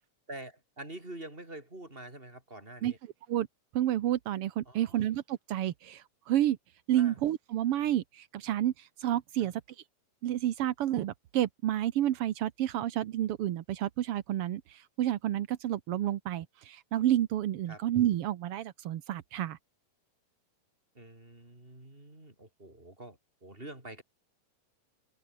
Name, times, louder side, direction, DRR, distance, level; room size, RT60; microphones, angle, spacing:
voice 1, 0.3-3.0 4.7-5.0 6.9-7.2 9.4-9.5 17.7-17.8 20.9-24.0, right 1 dB, 15° right, 6.3 m, -46 dB
voice 2, 3.7-6.6 6.9-9.5 10.2-19.6, right 12 dB, 75° right, 1.3 m, -30 dB
omnidirectional pair, 3.9 m